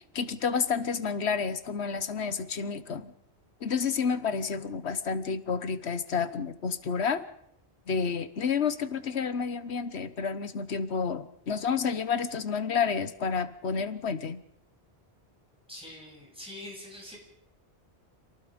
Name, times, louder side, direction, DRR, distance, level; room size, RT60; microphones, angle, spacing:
voice 1, 0.1-3.1 3.6-7.2 7.9-14.4, left 6 dB, 75° left, 13 dB, 1.4 m, -30 dB
voice 2, 15.7-17.2, left 1 dB, 5° right, -2 dB, 7.4 m, -44 dB
27.5 x 18.5 x 5.2 m, 0.71 s
omnidirectional pair, 1.1 m